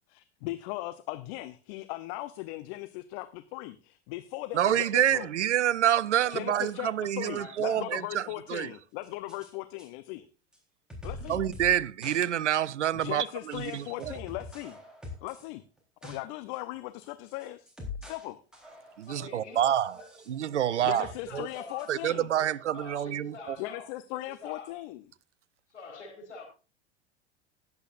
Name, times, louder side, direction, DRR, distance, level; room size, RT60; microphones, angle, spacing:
voice 1, 0.1-5.3 6.3-10.3 11.0-11.4 12.9-14.8 15.2-15.6 16.0-17.7 18.0-18.4 20.8-22.3 23.6-25.0, left 17 dB, 50° left, 0.8 m, -38 dB
voice 2, 4.5-8.2 8.5-8.7 11.3-14.1 19.0-19.9 20.3-21.1 21.3-21.5 21.9-23.6, right 11 dB, 85° right, 0.6 m, -27 dB
voice 3, 6.2-6.6 7.1-8.0 19.1-20.2 20.7-22.0 22.4-23.9 24.1-24.8 25.7-26.4, left 4 dB, 85° left, 4.3 m, -46 dB
sound 1, 9.0-9.5 9.8-9.9 10.5-10.6 10.9-11.8 12.0-12.2 12.5-12.6 13.0-13.1 13.5-15.5 15.8-16.2 16.5-16.6 17.0-18.3 18.5-19.2 19.8-20.6 21.0-21.9, left 3 dB, ahead, 3.7 m, -44 dB
19.5 x 8.2 x 2.5 m
figure-of-eight pair, 85°, 35 cm